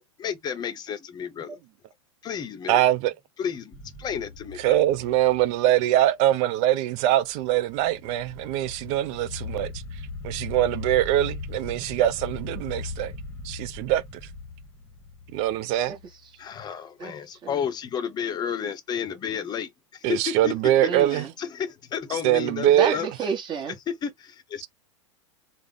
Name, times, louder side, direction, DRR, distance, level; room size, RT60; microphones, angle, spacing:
voice 1, 0.2-1.6 2.2-2.8 3.4-4.7 16.4-23.1 23.9-24.7, left 7 dB, 25° left, 0.7 m, -32 dB
voice 2, 2.7-3.1 4.6-9.7 10.2-13.1 13.4-14.0 15.3-16.0 20.0-21.2 22.2-23.0, right 13 dB, 45° right, 0.5 m, -23 dB
sound 1, 3.7-6.0 7.4-16.3, left 4 dB, 10° left, 1.1 m, -39 dB
voice 3, 20.8-21.3 22.7-23.7, right 5 dB, 30° right, 1.1 m, -30 dB
3.5 x 2.0 x 3.6 m
hypercardioid pair, 120°, 16 cm